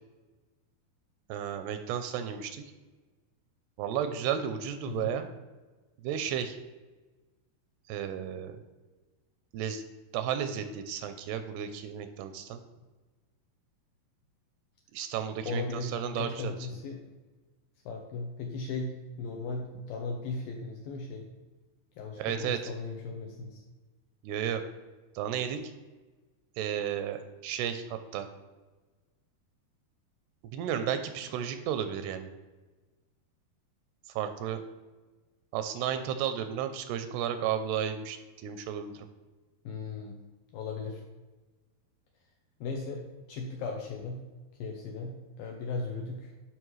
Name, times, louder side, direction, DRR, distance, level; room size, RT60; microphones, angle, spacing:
voice 1, 1.3-2.6 3.8-5.3 6.0-6.6 7.9-8.6 9.5-9.8 10.1-12.6 14.9-16.5 22.2-22.7 24.2-24.6 25.2-25.6 26.6-28.3 30.5-32.3 34.1-34.6 35.5-39.1, right 9 dB, 85° right, 9 dB, 2.5 m, -33 dB
voice 2, 15.5-17.0 17.9-21.3 22.0-23.6 39.6-40.2 40.5-41.0 42.6-44.2 44.6-46.3, left 3 dB, 75° left, 1 dB, 2.1 m, -37 dB
11.5 x 5.0 x 3.1 m, 1.3 s
omnidirectional pair, 4.9 m